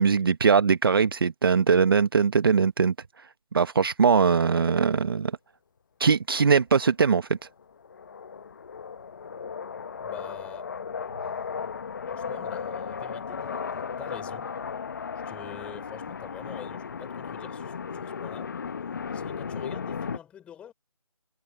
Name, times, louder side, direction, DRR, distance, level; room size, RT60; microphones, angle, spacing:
voice 1, 0.0-2.9 3.5-5.3 6.0-7.3, right 5 dB, 40° right, 1.1 m, -21 dB
sound 1, 7.6-20.2, left 6 dB, 35° left, 1.0 m, -35 dB
voice 2, 10.0-10.8 12.1-14.5 15.3-18.5 19.1-20.7, left 9 dB, 5° left, 5.4 m, -46 dB
figure-of-eight pair, 165°, 18 cm